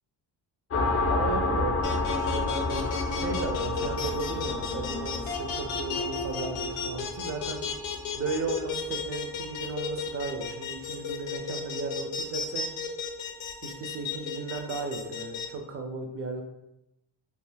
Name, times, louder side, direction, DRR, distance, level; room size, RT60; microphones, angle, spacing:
sound 1, 0.7-10.0, left 3 dB, 30° left, 0.5 m, -31 dB
voice 1, 1.0-7.6 8.2-12.6 13.6-16.4, right 4 dB, 35° right, 4 dB, 0.5 m, -35 dB
sound 2, 1.8-15.5, left 6 dB, 80° left, 0.6 m, -33 dB
2.4 x 2.3 x 3.2 m, 0.88 s
cardioid pair, 95°, 43 cm